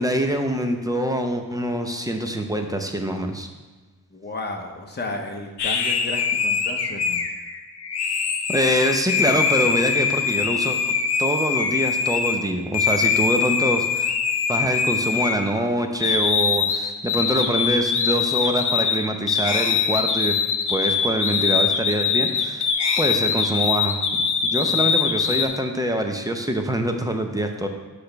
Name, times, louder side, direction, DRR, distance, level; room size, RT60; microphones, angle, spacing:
voice 1, 0.0-3.5 8.5-10.8 11.2-14.1 14.5-20.3 20.7-22.7 23.0-24.0 24.4-27.7, right 1 dB, 10° right, 4 dB, 0.6 m, -24 dB
voice 2, 4.1-7.3 24.7-24.8 25.2-25.5, left 2 dB, 25° left, 2 dB, 0.8 m, -33 dB
sound 1, 5.6-12.4 12.7-15.7 16.0-25.5, left 6 dB, 85° left, 0.6 m, -23 dB
6.2 x 3.3 x 5.8 m, 1.3 s
wide cardioid pair, 75°, 39 cm